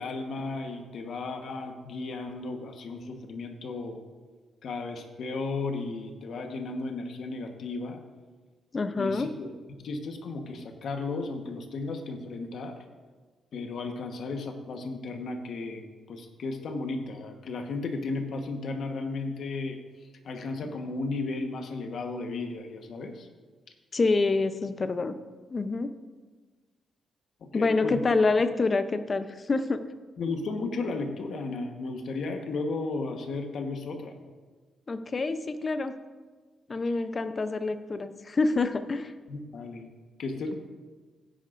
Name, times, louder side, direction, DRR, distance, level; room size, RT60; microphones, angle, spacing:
voice 1, 0.0-4.0 4.6-8.0 9.0-9.5 9.8-12.8 13.5-15.8 16.1-19.8 20.2-23.3 27.4-28.0 30.2-34.2 39.3-39.9 40.2-40.5, left 3 dB, 60° left, 5 dB, 1.2 m, -34 dB
voice 2, 8.7-9.3 20.6-20.7 23.9-25.2 25.5-25.9 27.5-30.0 34.9-35.9 36.7-39.1, left 3 dB, 30° left, 10 dB, 0.6 m, -27 dB
16.0 x 10.0 x 2.6 m, 1.4 s
cardioid pair, 125°, 0 cm